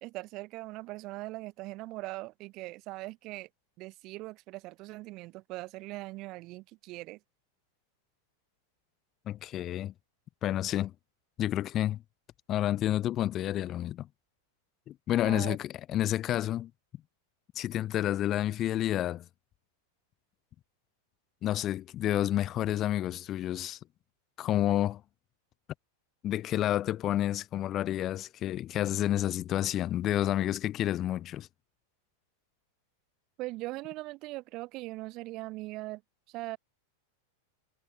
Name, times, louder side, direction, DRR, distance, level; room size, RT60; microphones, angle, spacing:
voice 1, 0.0-3.5 3.8-7.2 15.2-15.6 33.4-36.0 36.3-36.6, right 20 dB, 40° right, 2.1 m, -40 dB
voice 2, 9.3-9.9 10.4-10.9 11.4-12.0 12.5-14.1 14.9-16.7 17.6-19.3 21.4-23.8 24.4-25.0 26.2-31.5, left 12 dB, 30° left, 0.6 m, -30 dB
figure-of-eight pair, 90°, 0 cm